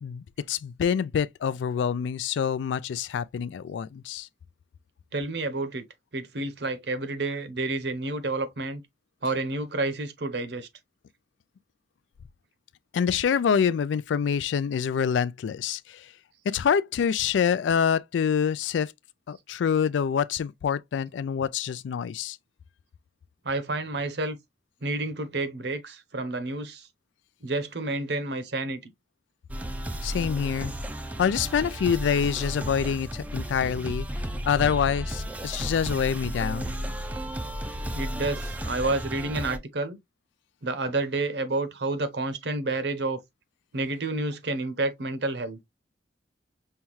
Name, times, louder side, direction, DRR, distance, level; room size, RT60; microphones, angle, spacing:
voice 1, 0.0-4.3 12.9-16.1 16.5-18.9 19.3-22.4 30.0-30.7 31.2-34.1 34.5-36.8, left 7 dB, 85° left, 0.3 m, -26 dB
voice 2, 5.1-5.8 6.1-8.8 9.2-10.7 23.4-24.4 24.8-26.9 27.4-28.9 37.9-40.0 40.6-43.2 43.7-45.6, right 2 dB, 70° right, 0.8 m, -29 dB
sound 1, 29.5-39.6, equal, 10° right, 0.3 m, -33 dB
5.5 x 2.3 x 3.0 m
head